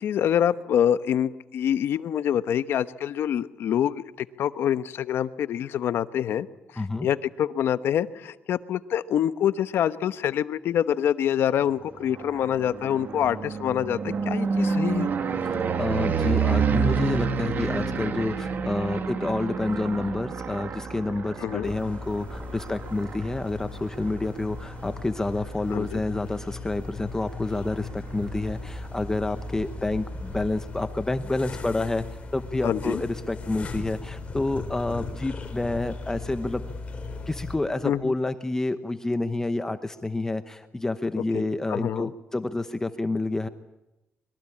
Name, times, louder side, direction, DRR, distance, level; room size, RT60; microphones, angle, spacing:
voice 1, 0.0-6.5 6.7-15.1 21.4-21.7 25.7-26.0 32.6-33.0 37.8-38.1 41.3-41.4 41.7-42.1, left 10 dB, 70° left, 13 dB, 1.0 m, -26 dB
voice 2, 6.8-7.1 15.8-36.6 37.3-43.5, left 2 dB, 15° left, 10 dB, 1.0 m, -29 dB
sound 1, 11.9-25.9 26.3-26.8 27.0-27.1 27.4-27.5 27.7-30.5, right 5 dB, 50° right, 2.2 m, -29 dB
sound 2, 21.6-37.6, left 3 dB, 30° left, 4.7 m, -38 dB
25.5 x 22.0 x 8.6 m, 0.94 s
cardioid pair, 145°, 4 cm